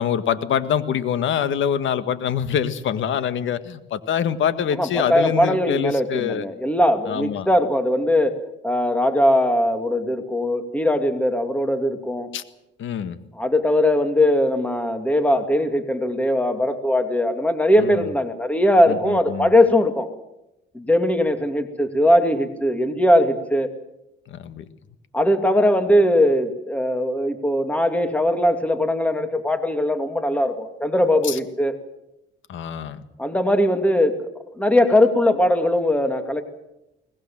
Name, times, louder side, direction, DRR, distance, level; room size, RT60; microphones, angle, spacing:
voice 1, 0.0-6.4 7.1-7.5 12.3-12.4 12.8-13.2 17.8-18.1 18.9-19.5 24.3-24.6 31.2-31.4 32.5-33.0, left 8 dB, 75° left, 12 dB, 1.7 m, -25 dB
voice 2, 4.7-8.4 8.6-12.3 13.4-20.1 20.7-23.7 25.1-31.8 33.2-34.2 34.6-36.4, left 1 dB, 5° left, 7 dB, 2.6 m, -20 dB
22.5 x 19.5 x 7.4 m, 0.86 s
cardioid pair, 90°, 20 cm